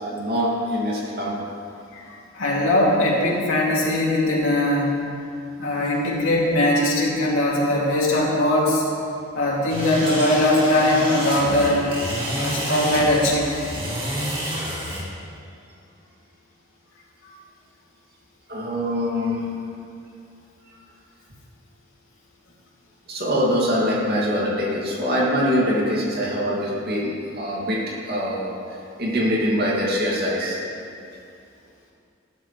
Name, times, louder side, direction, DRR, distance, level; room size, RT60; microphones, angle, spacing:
voice 1, 0.0-1.4 18.5-19.6 23.1-30.6, equal, 50° right, -5 dB, 2.6 m, -24 dB
voice 2, 1.9-4.9 5.6-8.8 9.3-11.9 12.3-13.5, left 1 dB, 85° left, -5 dB, 2.9 m, -20 dB
sound 1, 9.7-15.0, equal, 25° right, 2.4 m, -29 dB
14.0 x 12.5 x 3.4 m, 2.5 s
head